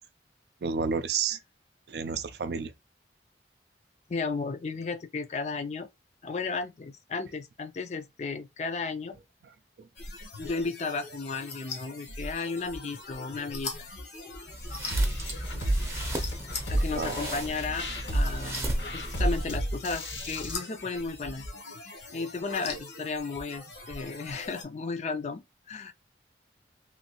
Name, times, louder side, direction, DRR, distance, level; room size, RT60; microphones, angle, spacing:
voice 1, 0.6-1.4 1.9-2.7 9.8-9.9 16.7-17.2, right 5 dB, 65° right, 0.4 m, -31 dB
voice 2, 4.1-5.9 6.2-9.2 10.4-13.7 16.7-17.9 18.1-21.5 22.1-25.9, left 4 dB, 40° left, 0.4 m, -34 dB
sound 1, 9.9-24.6, left 3 dB, 70° left, 0.9 m, -41 dB
sound 2, 14.5-19.7, right 1 dB, 15° right, 0.6 m, -36 dB
sound 3, 14.9-20.5, right 1 dB, 90° left, 1.9 m, -31 dB
3.2 x 2.7 x 2.8 m
head